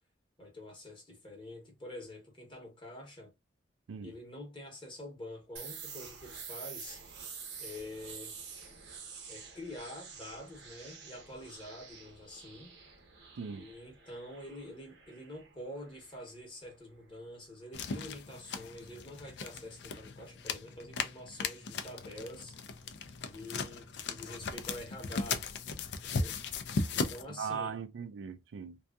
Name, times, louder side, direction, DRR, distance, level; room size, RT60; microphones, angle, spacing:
voice 1, 0.4-3.3 4.0-7.0 7.6-8.3 9.3-12.8 13.5-22.6 23.2-25.5 26.0-26.4 26.9-27.8, left 1 dB, 25° left, 0.8 m, -47 dB
sound 1, 5.6-17.2, right 6 dB, 65° right, 0.8 m, -49 dB
voice 2, 13.4-13.7 27.3-28.8, right 6 dB, 90° right, 0.4 m, -39 dB
sound 2, 17.7-27.2, left 4 dB, 65° left, 0.4 m, -37 dB
2.6 x 2.3 x 2.2 m
head